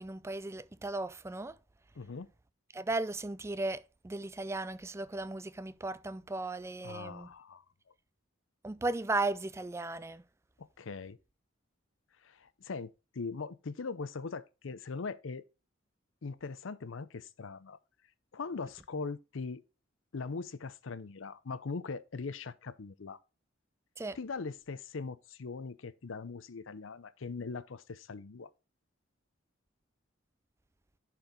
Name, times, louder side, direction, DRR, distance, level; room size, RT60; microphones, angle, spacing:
voice 1, 0.0-1.6 2.7-7.3 8.6-10.2 24.0-24.2, right 2 dB, 15° right, 0.4 m, -36 dB
voice 2, 2.0-2.3 6.8-7.6 10.6-11.2 12.2-15.4 16.2-17.8 18.3-19.6 20.1-23.2 24.2-28.5, left 4 dB, 80° left, 0.6 m, -41 dB
10.5 x 4.6 x 3.7 m
head